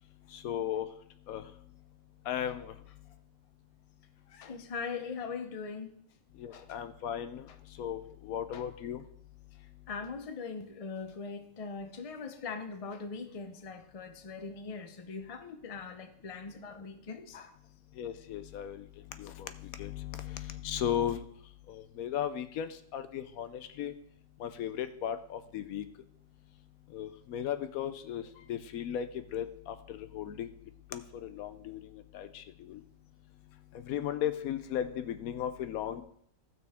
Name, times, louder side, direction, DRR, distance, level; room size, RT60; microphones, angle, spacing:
voice 1, 0.3-0.9 1.3-1.4 2.3-2.7 6.4-7.4 7.8-9.0 18.0-18.8 19.2-21.2 21.7-23.9 24.4-25.9 26.9-28.2 28.5-30.5 30.9-31.9 32.1-32.8 33.9-36.0, left 10 dB, 80° left, 11 dB, 1.1 m, -36 dB
voice 2, 4.3-5.9 6.5-6.8 8.5-8.6 9.9-17.5 20.2-20.3, left 5 dB, 35° left, 7 dB, 0.7 m, -41 dB
15.5 x 6.1 x 3.5 m, 0.66 s
omnidirectional pair, 1.5 m